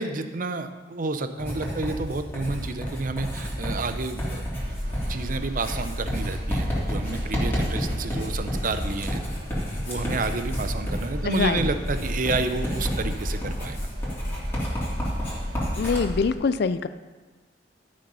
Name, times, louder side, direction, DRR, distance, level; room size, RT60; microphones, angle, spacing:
voice 1, 0.0-4.5 5.1-9.2 9.9-13.9, right 3 dB, 50° right, 9 dB, 0.7 m, -30 dB
Writing, 1.4-16.0, equal, 10° left, 3.3 m, -31 dB
sound 1, 4.6-16.3, equal, 65° right, 4.1 m, -34 dB
voice 2, 11.2-11.6 15.8-16.9, left 5 dB, 60° left, 13 dB, 0.4 m, -24 dB
12.5 x 6.5 x 5.5 m, 1.3 s
head